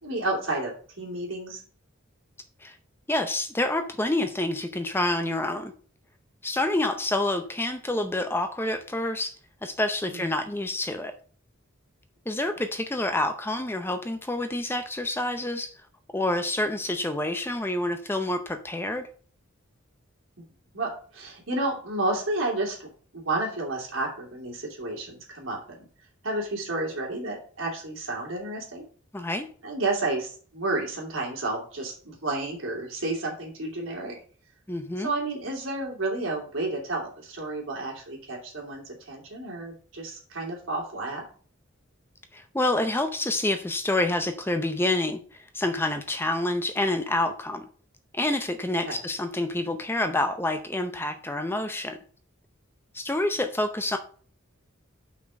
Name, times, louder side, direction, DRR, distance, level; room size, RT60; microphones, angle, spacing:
voice 1, 0.0-1.6 10.1-10.2 12.5-12.6 20.7-25.9 26.2-28.8 29.6-34.1 35.0-41.2 48.8-49.0, right 2 dB, 70° right, -1 dB, 3.0 m, -31 dB
voice 2, 3.1-5.7 6.4-9.3 9.6-11.1 12.3-15.7 16.1-19.0 29.1-29.5 34.7-35.1 42.3-45.2 45.5-47.7 48.1-52.0 52.9-54.0, left 1 dB, 10° left, 7 dB, 0.6 m, -27 dB
5.8 x 4.4 x 6.2 m, 0.43 s
head